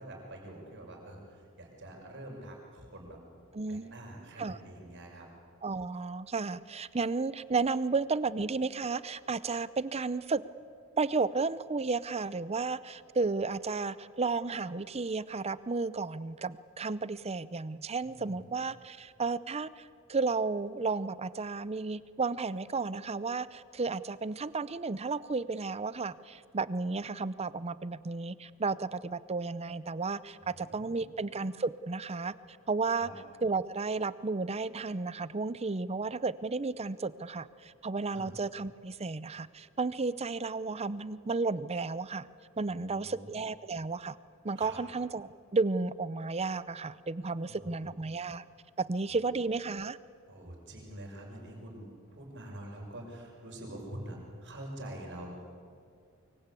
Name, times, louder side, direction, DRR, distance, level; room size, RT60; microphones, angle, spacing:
voice 1, 0.0-3.2 3.7-5.3 18.0-18.4 30.4-31.0 32.9-33.1 38.1-38.3 42.6-43.3 44.6-44.8 47.4-47.9 49.1-49.4 50.3-55.3, right 1 dB, 55° right, 0 dB, 5.8 m, -46 dB
voice 2, 3.5-3.9 4.4-4.6 5.6-10.4 11.0-32.3 32.7-33.1 33.4-42.3 42.6-44.2 44.4-48.4 48.8-50.0, right 4 dB, 30° right, 16 dB, 0.6 m, -33 dB
24.5 x 23.0 x 8.4 m, 2.3 s
head